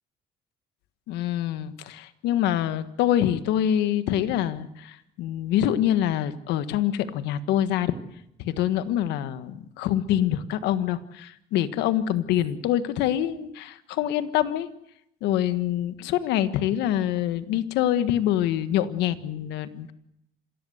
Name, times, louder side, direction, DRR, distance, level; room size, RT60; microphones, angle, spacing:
voice 1, 1.1-8.0 8.4-14.7 15.2-19.9, left 11 dB, 90° left, 12 dB, 1.5 m, -25 dB
26.0 x 17.0 x 7.9 m, 0.77 s
cardioid pair, 110°, 17 cm